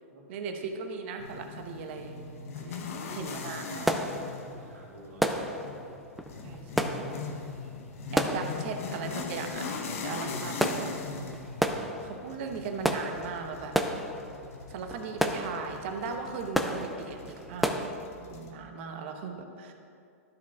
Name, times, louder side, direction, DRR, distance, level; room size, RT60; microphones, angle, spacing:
voice 1, 0.3-2.3 2.5-2.8 3.1-4.0 6.4-7.0 8.1-9.7 10.0-10.9 12.0-13.7 14.7-17.8 18.2-19.7, right 5 dB, 55° right, 5 dB, 1.0 m, -38 dB
sound 1, 1.2-18.5, left 4 dB, 70° left, 1.0 m, -40 dB
sound 2, 2.8-3.0 3.3-17.9, equal, ahead, 0.4 m, -33 dB
voice 2, 4.3-5.4 11.5-12.2, right 1 dB, 85° right, -2 dB, 2.0 m, -52 dB
12.5 x 4.9 x 3.6 m, 2.5 s
hypercardioid pair, 135°, 8 cm